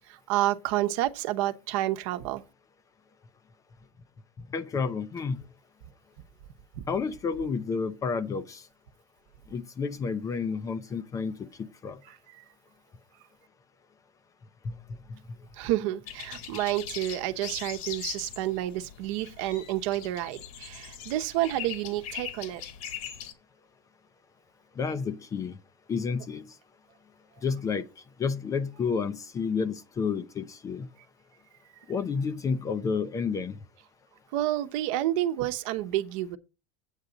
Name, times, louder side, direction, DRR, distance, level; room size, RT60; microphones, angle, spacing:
voice 1, 0.1-2.4 6.7-6.8 12.0-12.4 15.5-22.6 34.3-36.4, right 14 dB, 60° right, 0.9 m, -29 dB
voice 2, 4.5-5.4 6.9-8.6 9.5-12.0 14.6-14.8 24.8-25.6 25.9-26.4 27.4-27.8 28.2-30.9 31.9-33.6, left 5 dB, 20° left, 0.4 m, -30 dB
sound 1, 16.1-23.3, left 9 dB, 70° left, 1.6 m, -41 dB
9.0 x 8.2 x 3.9 m
supercardioid pair, 165°, 18 cm